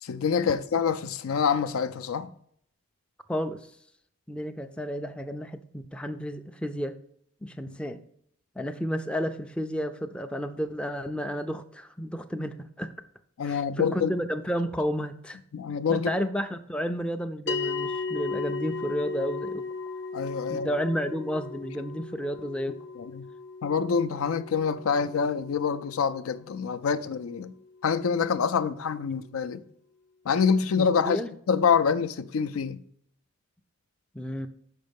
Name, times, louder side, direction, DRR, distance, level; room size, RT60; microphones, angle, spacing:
voice 1, 0.0-2.3 7.7-7.8 13.4-14.1 15.5-16.1 20.1-20.7 23.0-23.3 23.6-27.5 27.8-29.6 30.3-31.2 31.5-32.8, left 6 dB, 80° left, 0.4 m, -26 dB
voice 2, 3.3-3.7 4.3-7.0 7.4-8.0 8.6-12.9 13.4-15.4 15.9-19.7 20.5-22.8 30.8-31.3 34.1-34.5, equal, 5° left, 0.3 m, -31 dB
sound 1, 17.5-28.0, left 4 dB, 55° left, 0.7 m, -37 dB
6.4 x 5.3 x 5.1 m
head